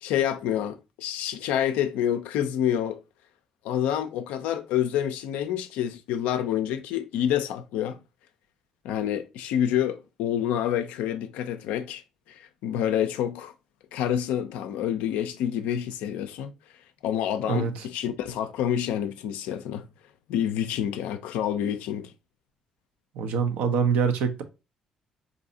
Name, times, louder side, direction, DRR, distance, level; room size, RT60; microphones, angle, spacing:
voice 1, 0.0-3.0 3.6-8.0 8.8-12.0 12.3-13.5 13.9-16.5 17.0-19.9 20.3-22.1, left 10 dB, 75° left, 0.4 m, -28 dB
voice 2, 17.5-17.9 23.1-24.4, right 6 dB, 70° right, 0.5 m, -25 dB
4.0 x 2.6 x 2.6 m
hypercardioid pair, 50°, 3 cm